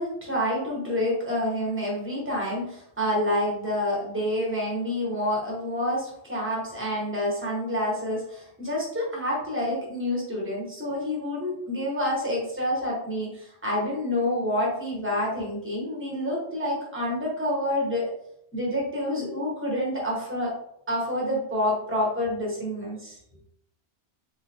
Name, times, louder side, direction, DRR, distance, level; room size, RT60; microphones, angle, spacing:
voice 1, 0.0-18.1 18.5-20.5 20.9-23.2, left 1 dB, 10° right, -4 dB, 1.2 m, -28 dB
3.5 x 2.8 x 3.4 m, 0.72 s
omnidirectional pair, 1.2 m